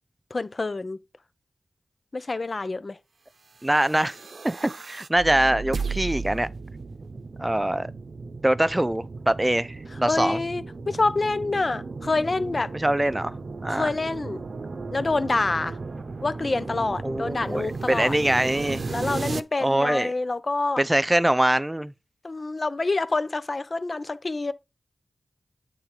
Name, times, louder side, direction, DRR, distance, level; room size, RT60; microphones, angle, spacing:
voice 1, 0.3-1.0 2.1-3.0 9.9-12.7 13.7-14.4 14.9-15.8 16.2-18.2 18.9-20.8 22.2-24.5, left 3 dB, 50° left, 0.7 m, -27 dB
voice 2, 3.6-4.2 4.4-6.5 7.4-7.9 8.4-10.4 12.7-13.4 13.6-13.9 17.0-18.8 19.6-20.1 20.8-21.9, right 1 dB, 15° right, 0.6 m, -23 dB
sound 1, 3.6-19.4, right 4 dB, 70° right, 0.7 m, -35 dB
8.8 x 3.9 x 4.8 m
cardioid pair, 45°, 0 cm